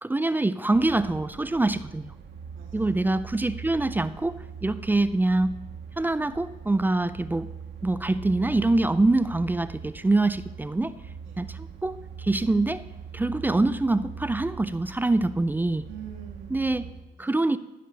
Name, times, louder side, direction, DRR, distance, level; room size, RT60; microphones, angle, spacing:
voice 1, 0.0-2.1 2.7-5.5 6.0-7.5 7.8-11.0 11.4-12.8 13.1-15.8 16.5-16.8 17.2-17.6, right 2 dB, 10° right, 14 dB, 0.3 m, -25 dB
sound 1, 0.7-16.9, right 7 dB, 65° right, 1.3 m, -41 dB
voice 2, 2.5-3.0 11.2-11.5 15.8-17.5, right 8 dB, 85° right, 0 dB, 2.3 m, -46 dB
14.5 x 5.0 x 6.7 m, 1.1 s
cardioid pair, 105°, 20 cm